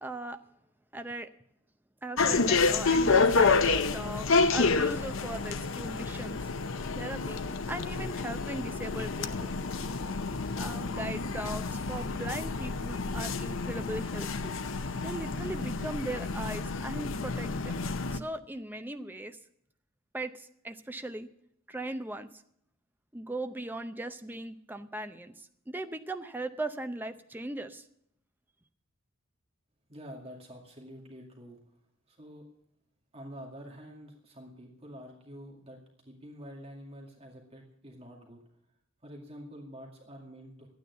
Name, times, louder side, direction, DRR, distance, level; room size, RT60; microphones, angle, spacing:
voice 1, 0.0-0.4 0.9-1.3 2.0-6.4 6.7-9.5 10.6-14.6 15.0-17.8 18.1-19.4 20.1-21.3 21.7-22.3 23.1-27.8, right 1 dB, 10° right, 7 dB, 0.6 m, -39 dB
sound 1, 2.2-18.2, left 4 dB, 65° left, 0.7 m, -29 dB
voice 2, 29.9-31.6 32.1-32.4 33.1-38.4 39.0-40.7, equal, 30° right, 0 dB, 2.2 m, -47 dB
12.0 x 9.4 x 8.2 m, 0.73 s
head